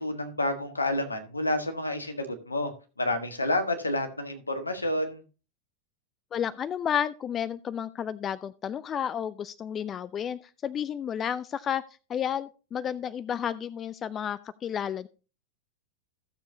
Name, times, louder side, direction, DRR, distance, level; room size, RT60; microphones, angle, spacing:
voice 1, 0.0-2.7 3.0-5.2, left 1 dB, 80° left, 6 dB, 1.5 m, -29 dB
voice 2, 6.3-11.8 12.1-15.1, left 9 dB, 25° left, 18 dB, 0.4 m, -31 dB
15.0 x 7.0 x 2.8 m, 0.33 s
figure-of-eight pair, 90°, 0 cm